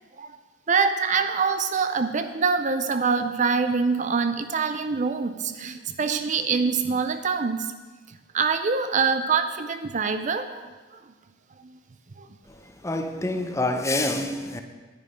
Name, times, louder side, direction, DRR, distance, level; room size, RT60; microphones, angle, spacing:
voice 1, 0.7-7.7 8.3-11.0 11.6-11.8 12.2-12.3, right 5 dB, 40° right, 0.5 m, -25 dB
voice 2, 12.4-14.6, left 2 dB, 15° left, 0.7 m, -27 dB
9.9 x 9.9 x 5.0 m
head